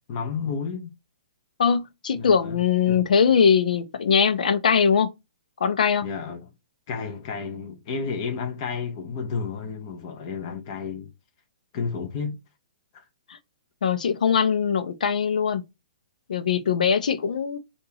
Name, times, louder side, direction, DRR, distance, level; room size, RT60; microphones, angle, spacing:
voice 1, 0.1-0.9 2.2-3.0 6.0-6.4 6.9-11.1 11.7-12.4, left 5 dB, 35° left, 1.0 m, -31 dB
voice 2, 1.6-5.1 5.6-6.1 13.8-15.6 16.3-17.6, left 6 dB, 80° left, 0.8 m, -21 dB
5.4 x 2.7 x 2.9 m
hypercardioid pair, 165°, 4 cm